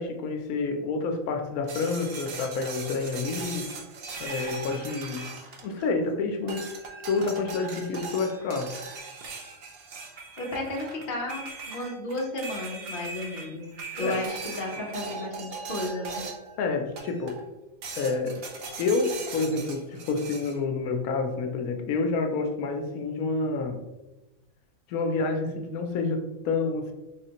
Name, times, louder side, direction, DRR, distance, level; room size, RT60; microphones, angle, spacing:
voice 1, 0.0-3.7 4.2-5.3 5.6-6.7 7.1-8.7 14.0-14.3 16.6-17.4 18.0-18.4 18.8-23.9 24.9-26.9, left 4 dB, 90° left, 4 dB, 1.0 m, -28 dB
sound 1, 1.7-6.1 6.5-16.6 17.0-17.5 17.8-20.6, right 4 dB, 60° right, 0.7 m, -39 dB
voice 2, 10.4-13.6 14.0-16.2, left 1 dB, 45° left, -1 dB, 0.9 m, -33 dB
3.8 x 3.2 x 2.8 m, 1.0 s
omnidirectional pair, 1.5 m